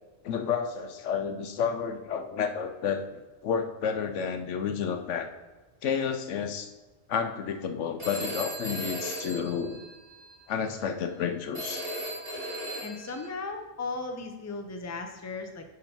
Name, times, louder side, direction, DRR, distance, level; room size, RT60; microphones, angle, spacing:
voice 1, 0.2-5.3 5.8-6.7 7.1-9.8 10.5-11.8, left 7 dB, 70° left, 7 dB, 1.0 m, -31 dB
Telephone, 8.0-10.3 11.5-13.3, equal, 30° right, 2.8 m, -37 dB
voice 2, 12.8-15.6, left 3 dB, 15° left, 4 dB, 0.6 m, -36 dB
10.5 x 3.9 x 4.4 m, 1.2 s
omnidirectional pair, 1.3 m